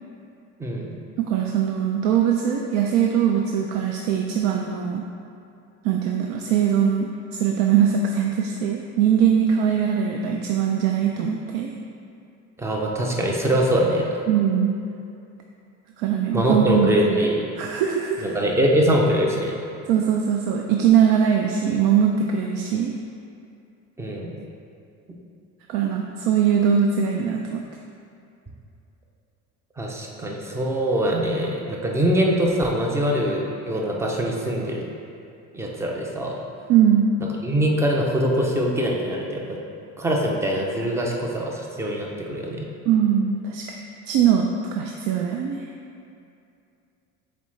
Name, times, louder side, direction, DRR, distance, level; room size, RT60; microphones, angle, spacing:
voice 1, 0.6-1.0 12.6-14.1 16.3-17.5 18.2-19.5 24.0-24.4 29.8-34.8 35.5-36.4 37.4-39.6 40.0-42.7, equal, 10° right, -1 dB, 0.4 m, -23 dB
voice 2, 1.2-5.1 5.8-11.7 14.3-14.8 16.0-17.2 17.6-18.2 19.9-22.9 25.7-27.6 36.7-37.1 42.9-43.8 44.1-45.6, right 8 dB, 85° right, 1 dB, 0.5 m, -21 dB
7.2 x 4.2 x 3.2 m, 2.6 s
cardioid pair, 170°, 32 cm